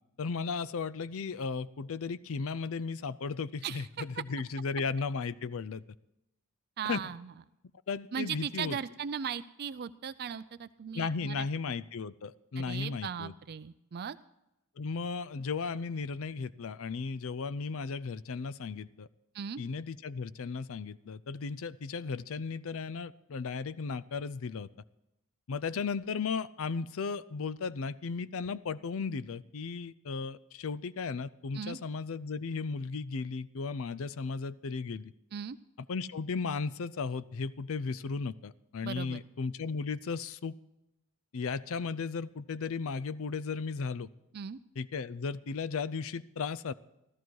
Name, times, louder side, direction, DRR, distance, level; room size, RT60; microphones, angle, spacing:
voice 1, 0.2-5.8 6.9-7.0 7.9-8.8 10.9-13.3 14.8-19.1 19.6-24.7 25.5-35.1 35.9-40.5 41.3-44.1 44.8-46.7, left 5 dB, 65° left, 17 dB, 0.5 m, -35 dB
voice 2, 3.6-4.0 6.8-7.3 8.1-11.5 12.6-14.2 19.3-19.6 31.5-31.8 35.3-35.6 38.8-39.2 44.3-44.6, right 7 dB, 45° right, 13 dB, 0.4 m, -38 dB
14.5 x 14.0 x 4.7 m, 0.89 s
head